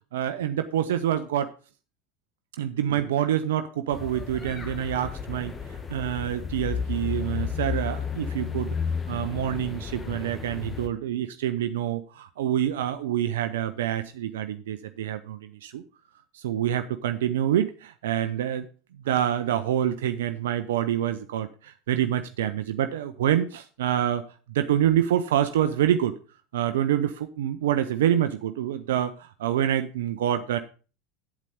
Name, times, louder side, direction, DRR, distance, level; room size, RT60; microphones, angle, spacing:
voice 1, 0.1-1.5 2.6-5.5 5.9-8.7 9.1-15.8 16.3-18.7 19.0-24.2 24.5-26.1 26.5-30.6, right 11 dB, 70° right, 9 dB, 0.6 m, -26 dB
sound 1, 3.9-10.9, left 6 dB, 25° left, 1.5 m, -32 dB
8.5 x 8.3 x 5.1 m, 0.36 s
figure-of-eight pair, 75°, 0 cm